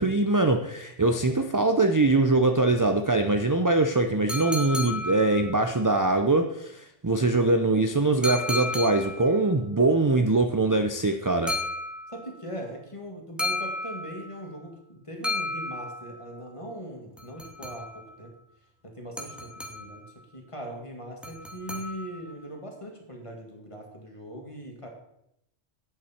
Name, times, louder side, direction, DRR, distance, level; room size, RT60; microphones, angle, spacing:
voice 1, 0.0-11.6, right 2 dB, 25° right, 6 dB, 0.4 m, -23 dB
sound 1, 4.3-5.8 8.2-9.4 11.5-12.4 13.4-14.4 15.2-16.3 17.2-18.1 19.2-20.1 21.2-22.3, left 2 dB, ahead, 1.8 m, -33 dB
voice 2, 12.1-18.3 18.8-20.0 20.3-24.9, equal, 25° left, 1 dB, 2.0 m, -40 dB
11.0 x 8.5 x 4.4 m, 0.79 s
omnidirectional pair, 1.2 m